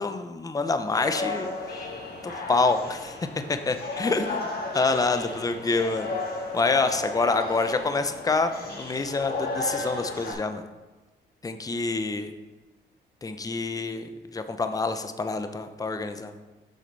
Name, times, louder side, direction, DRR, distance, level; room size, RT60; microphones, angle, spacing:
voice 1, 0.0-1.5 2.2-3.2 3.5-4.5 4.7-6.1 6.5-10.6 11.4-12.3 13.2-16.3, left 3 dB, 20° left, 8 dB, 0.6 m, -27 dB
sound 1, 0.9-10.3, left 2 dB, 50° left, 2.2 m, -34 dB
7.7 x 6.5 x 4.0 m, 1.2 s
cardioid pair, 90°, 20 cm